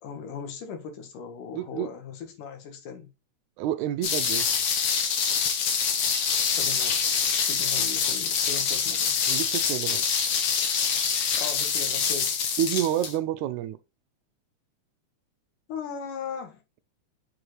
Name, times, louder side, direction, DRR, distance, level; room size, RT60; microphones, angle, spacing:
voice 1, 0.0-3.1 6.6-7.0 7.5-9.2 11.4-12.3 15.7-16.6, left 6 dB, 90° left, 3.0 m, -38 dB
voice 2, 1.5-1.9 3.6-4.5 9.3-10.0 12.6-13.8, right 11 dB, 80° right, 1.8 m, -28 dB
sound 1, 4.0-13.2, left 6 dB, 60° left, 1.7 m, -25 dB
6.9 x 4.9 x 3.1 m
omnidirectional pair, 3.6 m